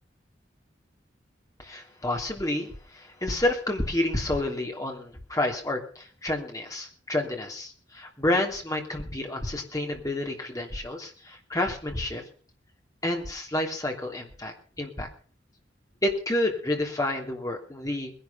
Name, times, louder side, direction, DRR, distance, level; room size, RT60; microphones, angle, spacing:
voice 1, 1.6-12.2 13.0-15.1 16.0-18.1, left 1 dB, 20° left, 2 dB, 2.9 m, -29 dB
20.0 x 11.5 x 5.7 m, 0.43 s
head